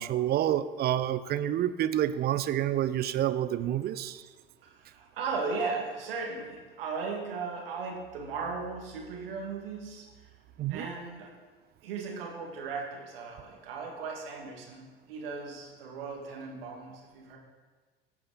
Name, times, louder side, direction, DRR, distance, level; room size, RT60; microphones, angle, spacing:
voice 1, 0.0-4.2 10.6-10.9, right 12 dB, 30° right, 14 dB, 0.5 m, -28 dB
voice 2, 4.6-10.3 10.7-11.3 11.8-17.4, right 4 dB, 70° right, 0 dB, 2.0 m, -37 dB
15.0 x 5.8 x 4.0 m, 1.4 s
figure-of-eight pair, 70°, 30 cm